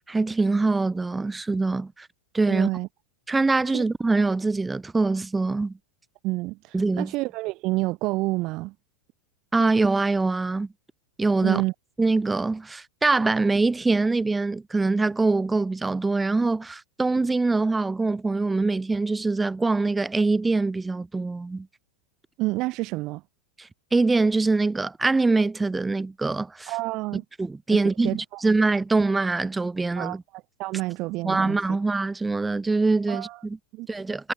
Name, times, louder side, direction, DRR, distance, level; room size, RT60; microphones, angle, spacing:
voice 1, 0.0-2.1 2.3-2.7 3.3-5.8 6.7-7.1 9.5-10.7 11.2-11.6 12.0-21.7 23.6-26.7 27.4-30.2 31.2-33.6 33.9-34.3, right 3 dB, 10° right, 7.1 m, -24 dB
voice 2, 2.5-2.9 3.7-3.8 6.2-8.7 11.4-11.7 22.4-23.2 26.7-27.2 28.0-28.4 30.0-31.6 33.1-33.4 33.7-33.9, right 21 dB, 40° right, 5.6 m, -28 dB
figure-of-eight pair, 90°, 0 cm